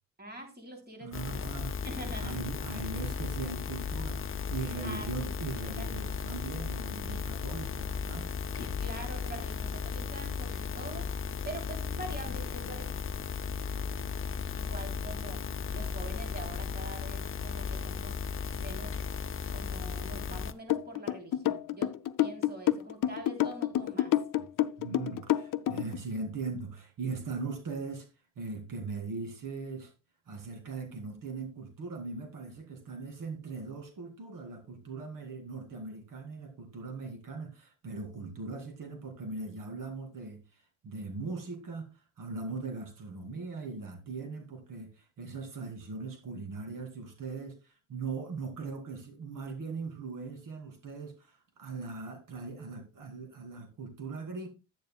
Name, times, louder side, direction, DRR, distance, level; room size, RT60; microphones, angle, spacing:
voice 1, 0.2-1.5 1.8-2.4 4.8-5.3 5.8-6.1 8.6-12.9 14.5-15.5 15.7-18.2 18.6-19.0 19.5-24.1, right 2 dB, 30° right, 3.2 m, -44 dB
voice 2, 1.0-1.8 2.2-8.3 24.8-28.1 28.4-29.9 30.3-54.5, right 4 dB, 85° right, 2.7 m, -40 dB
sound 1, 1.1-20.5, left 6 dB, 40° left, 0.7 m, -35 dB
sound 2, 20.7-26.0, left 13 dB, 90° left, 0.6 m, -28 dB
11.5 x 9.3 x 2.3 m
cardioid pair, 95°, 31 cm